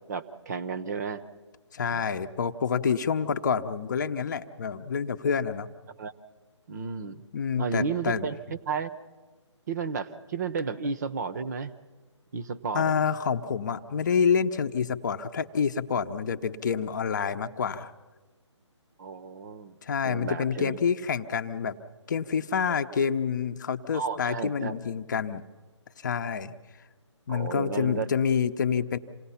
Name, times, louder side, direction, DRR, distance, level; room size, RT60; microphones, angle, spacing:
voice 1, 0.1-1.2 1.9-2.0 6.0-6.1 6.7-7.2 7.6-8.4 8.7-8.9 9.7-11.7 12.3-12.9 19.0-19.7 20.0-20.8 23.9-24.8 27.3-28.1, right 5 dB, 35° right, 13 dB, 0.9 m, -32 dB
voice 2, 1.7-5.7 7.3-8.3 12.7-17.9 19.8-21.8 22.1-25.4 26.0-26.6 27.3-29.0, left 6 dB, 40° left, 9 dB, 0.8 m, -27 dB
27.5 x 18.0 x 5.7 m, 1.3 s
figure-of-eight pair, 145°, 16 cm